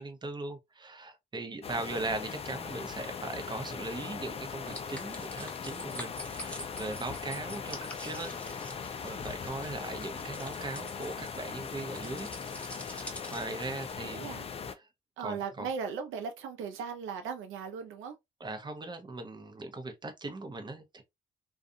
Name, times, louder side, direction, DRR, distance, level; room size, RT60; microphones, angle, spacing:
voice 1, 0.0-14.3 14.7-14.9 15.2-15.7 18.4-21.0, right 2 dB, 20° right, 0.7 m, -39 dB
sound 1, 1.6-14.7, left 6 dB, 30° left, 0.4 m, -40 dB
sound 2, 4.7-13.9, left 1 dB, 5° left, 0.8 m, -47 dB
voice 2, 14.0-14.4 15.2-18.1, right 6 dB, 85° right, 0.6 m, -37 dB
2.5 x 2.4 x 2.6 m
cardioid pair, 90°, 20 cm